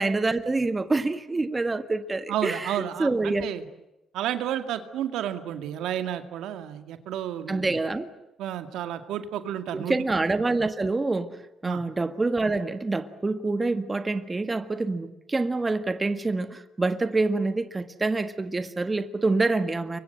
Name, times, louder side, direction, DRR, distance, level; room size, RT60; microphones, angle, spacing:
voice 1, 0.0-2.7 3.0-3.5 7.5-8.1 9.7-11.4 11.6-20.0, right 3 dB, 20° right, 1.7 m, -26 dB
voice 2, 2.3-3.7 4.1-7.8 8.4-10.0 11.6-11.8, right 11 dB, 85° right, 2.2 m, -31 dB
28.5 x 24.5 x 7.9 m
cardioid pair, 90°, 0 cm